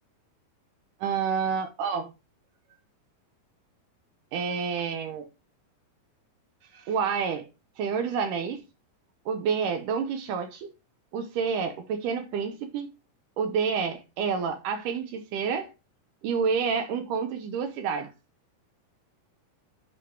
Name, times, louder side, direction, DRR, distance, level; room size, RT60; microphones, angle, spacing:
voice 1, 1.0-2.1 4.3-5.3 6.7-7.5 7.8-8.6 9.3-10.7 11.1-12.9 13.4-15.7 16.2-18.1, right 6 dB, 75° right, 2.2 m, -29 dB
8.0 x 3.4 x 4.5 m
omnidirectional pair, 4.2 m